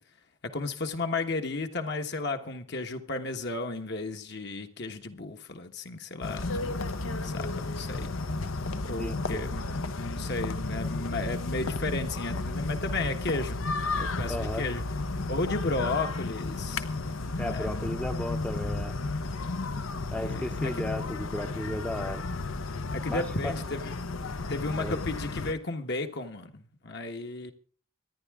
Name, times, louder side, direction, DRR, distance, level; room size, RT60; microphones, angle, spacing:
voice 1, 0.4-6.7 7.0-8.1 8.9-13.6 13.9-14.8 15.3-16.8 17.4-18.0 20.2-20.9 22.9-23.9 24.5-27.5, left 3 dB, 55° left, 1.3 m, -34 dB
sound 1, 6.2-25.5, left 3 dB, 75° left, 0.9 m, -33 dB
voice 2, 9.0-9.4 14.3-14.6 17.4-19.0 20.1-22.3 23.1-23.6 24.8-25.0, left 1 dB, 5° left, 0.7 m, -34 dB
25.0 x 10.5 x 3.7 m
head